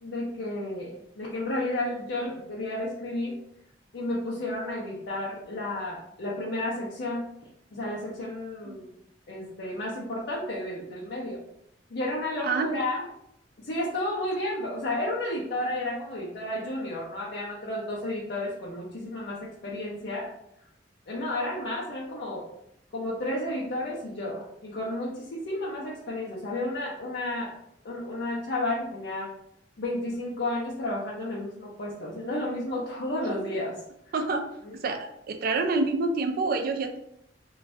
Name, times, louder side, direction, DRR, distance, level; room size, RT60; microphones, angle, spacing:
voice 1, 0.0-3.3 3.9-7.2 7.7-8.9 9.3-11.4 11.9-13.0 13.6-20.3 21.1-22.5 22.9-27.5 27.8-29.3 29.8-33.7, left 1 dB, 60° left, -6 dB, 0.6 m, -32 dB
voice 2, 12.4-13.0 33.2-33.5 34.1-34.4 34.8-35.0 35.3-37.0, right 3 dB, 55° right, 5 dB, 0.4 m, -28 dB
2.6 x 2.3 x 3.2 m, 0.76 s
head